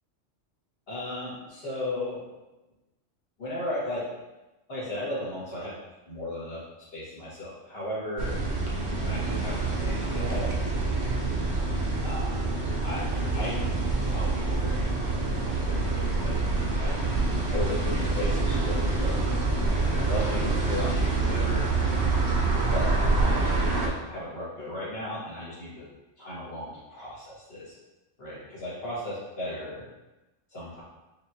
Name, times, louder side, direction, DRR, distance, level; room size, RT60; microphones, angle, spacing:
voice 1, 0.9-2.3 3.4-4.1 4.7-5.8 6.1-6.6 6.9-8.4 9.0-11.3 12.0-12.4 12.8-13.1 13.3-13.6 14.0-14.9 15.1-16.4 16.7-17.0 17.5-19.3 20.0-21.7 22.7-25.9 26.2-27.7 28.2-29.8 30.5-30.8, left 1 dB, 55° left, -8 dB, 1.6 m, -36 dB
sound 1, 8.2-23.9, right 3 dB, 65° right, 0.9 m, -26 dB
4.9 x 2.6 x 2.7 m, 1.1 s
omnidirectional pair, 1.3 m